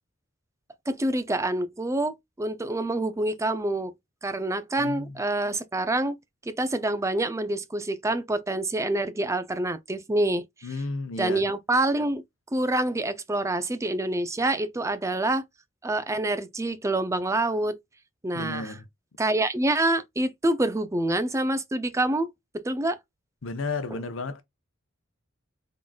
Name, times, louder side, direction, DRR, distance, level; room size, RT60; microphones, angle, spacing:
voice 1, 0.9-3.9 4.2-6.2 6.6-10.4 11.2-12.2 12.5-15.4 15.8-17.8 18.2-18.7 19.2-23.0, right 2 dB, 15° right, 0.5 m, -26 dB
voice 2, 4.8-5.2 10.6-11.5 18.3-18.9 23.4-24.4, left 3 dB, 75° left, 0.7 m, -33 dB
3.8 x 3.7 x 2.3 m
head